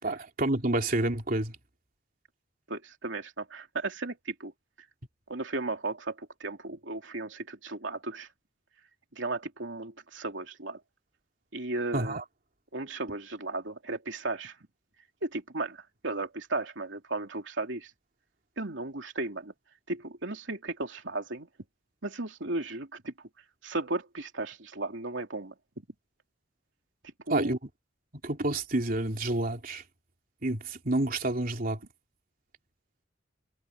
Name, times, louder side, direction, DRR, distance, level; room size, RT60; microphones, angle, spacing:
voice 1, 0.0-1.5 11.9-12.2 27.3-27.6 28.2-29.8 30.4-31.8, right 2 dB, 50° right, 3.3 m, -29 dB
voice 2, 2.7-4.5 5.3-8.3 9.1-10.8 11.5-12.2 12.7-14.6 15.2-17.9 18.6-19.5 19.9-21.5 22.0-23.3 23.6-25.8 27.3-27.6, right 2 dB, 80° right, 2.9 m, -35 dB
head